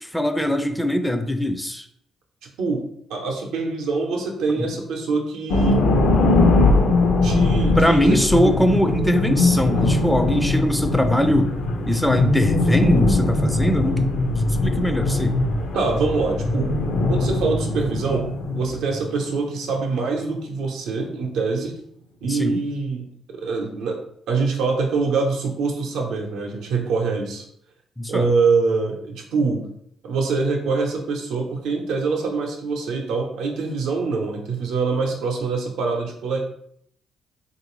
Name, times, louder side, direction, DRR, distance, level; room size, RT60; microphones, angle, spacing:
voice 1, 0.0-1.9 4.6-4.7 7.8-11.5 11.9-15.4 22.2-22.6 28.0-28.3, equal, 5° left, 7 dB, 0.3 m, -21 dB
voice 2, 3.1-5.8 7.2-8.6 15.7-16.7 17.1-21.8 22.2-24.0 24.3-27.4 28.1-29.7 30.0-36.4, right 4 dB, 85° right, 2 dB, 0.7 m, -24 dB
sound 1, 5.5-19.8, left 2 dB, 75° left, 0.5 m, -21 dB
3.2 x 2.5 x 3.1 m, 0.69 s
cardioid pair, 90°, 0 cm